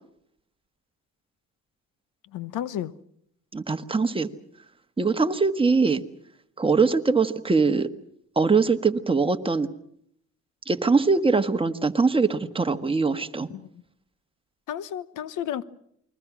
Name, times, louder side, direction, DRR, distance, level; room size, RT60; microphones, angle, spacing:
voice 1, 2.3-2.9 13.5-13.7 14.7-15.6, left 10 dB, 85° left, 1.2 m, -32 dB
voice 2, 3.5-4.3 5.0-6.0 6.6-7.9 8.3-9.7 10.7-13.5, right 4 dB, 20° right, 1.5 m, -22 dB
28.5 x 21.5 x 6.2 m
cardioid pair, 90°, 30 cm